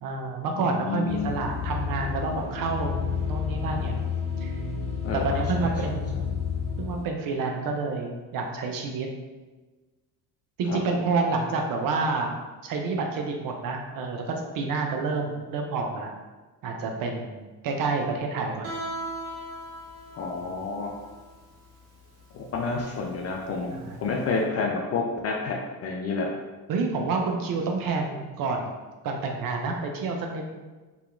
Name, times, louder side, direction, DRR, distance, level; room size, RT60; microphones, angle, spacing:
voice 1, 0.0-2.9 3.2-4.0 4.4-4.5 5.1-6.2 6.8-9.1 10.6-12.3 12.6-16.1 16.6-18.7 23.7-24.0 26.7-28.8 29.0-30.5, right 4 dB, 45° right, 2 dB, 0.5 m, -28 dB
voice 2, 0.6-1.3 5.0-5.7 10.7-10.8 20.1-20.9 22.3-25.6 25.8-26.3, left 4 dB, 35° left, -1 dB, 0.4 m, -29 dB
sound 1, 1.1-7.0, left 6 dB, 15° left, 1.0 m, -30 dB
Guitar, 18.6-24.3, right 1 dB, 65° right, 1.0 m, -39 dB
2.7 x 2.2 x 2.3 m, 1.3 s
hypercardioid pair, 55°, 49 cm